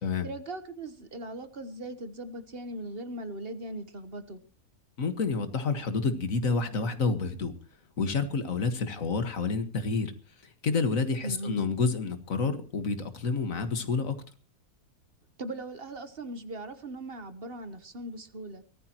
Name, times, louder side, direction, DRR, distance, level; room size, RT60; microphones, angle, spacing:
voice 1, 0.2-4.4 11.2-11.6 15.4-18.6, right 1 dB, 40° right, 11 dB, 1.3 m, -39 dB
voice 2, 5.0-7.5 8.0-10.1 10.6-14.2, left 4 dB, 60° left, 9 dB, 2.0 m, -29 dB
23.5 x 14.5 x 3.0 m, 0.36 s
omnidirectional pair, 1.6 m